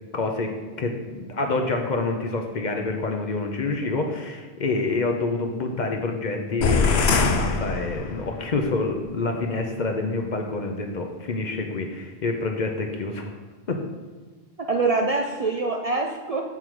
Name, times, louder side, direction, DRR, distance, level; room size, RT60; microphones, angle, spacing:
voice 1, 0.1-13.4 13.7-13.8, left 3 dB, 50° left, 3 dB, 0.7 m, -27 dB
sound 1, 6.6-8.5, left 4 dB, 80° left, 0.9 m, -22 dB
voice 2, 14.6-16.4, right 3 dB, 50° right, 1 dB, 0.5 m, -25 dB
8.1 x 3.8 x 4.6 m, 1.3 s
omnidirectional pair, 1.1 m